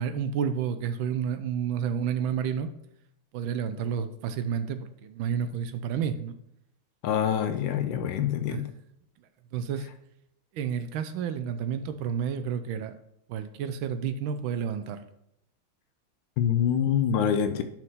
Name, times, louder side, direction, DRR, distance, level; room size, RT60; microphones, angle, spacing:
voice 1, 0.0-2.7 3.3-6.4 8.5-8.6 9.5-9.9 10.5-12.9 13.3-15.0, right 7 dB, 75° right, 11 dB, 1.3 m, -30 dB
voice 2, 7.0-8.7 16.4-17.6, left 9 dB, 75° left, 9 dB, 1.2 m, -25 dB
5.9 x 4.5 x 5.6 m, 0.77 s
omnidirectional pair, 2.3 m